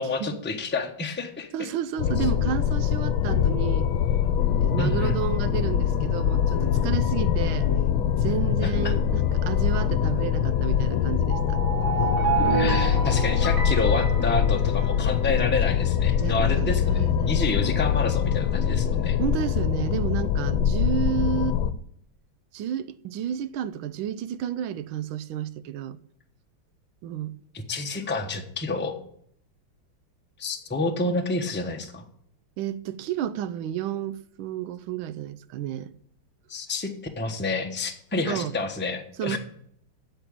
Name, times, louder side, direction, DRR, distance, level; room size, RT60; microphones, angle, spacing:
voice 1, 0.0-1.5 4.8-5.2 8.6-8.9 12.4-19.2 27.5-29.0 30.4-32.0 36.5-36.9 37.2-39.4, left 3 dB, 10° left, 0.7 m, -29 dB
voice 2, 1.5-3.9 4.6-7.7 8.2-11.6 14.8-15.0 16.1-17.3 19.2-21.6 22.5-26.0 27.0-27.4 32.6-35.9 38.3-38.5 39.2-39.4, right 10 dB, 80° right, 1.4 m, -31 dB
sound 1, 2.0-21.7, left 9 dB, 75° left, 1.5 m, -24 dB
sound 2, 2.2-19.6, left 6 dB, 50° left, 1.2 m, -39 dB
sound 3, 11.2-15.2, right 6 dB, 10° right, 3.0 m, -29 dB
8.9 x 7.3 x 8.6 m
omnidirectional pair, 2.3 m